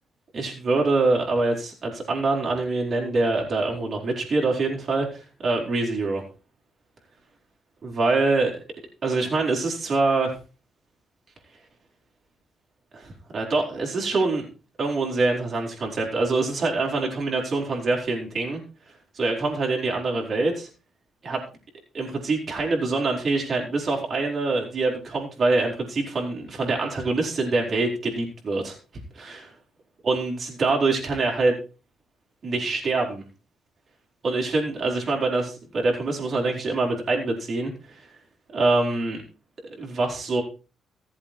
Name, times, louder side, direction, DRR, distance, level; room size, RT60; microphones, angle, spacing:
voice 1, 0.3-6.2 7.8-8.5 9.0-10.3 12.9-14.5 14.8-18.6 19.1-20.7 21.2-21.4 21.9-28.8 29.1-29.5 30.0-31.6 32.4-33.2 34.2-38.1 38.5-39.2 39.8-40.4, right 3 dB, 45° right, -1 dB, 4.6 m, -25 dB
15.0 x 7.8 x 4.5 m, 0.34 s
cardioid pair, 90°, 0 cm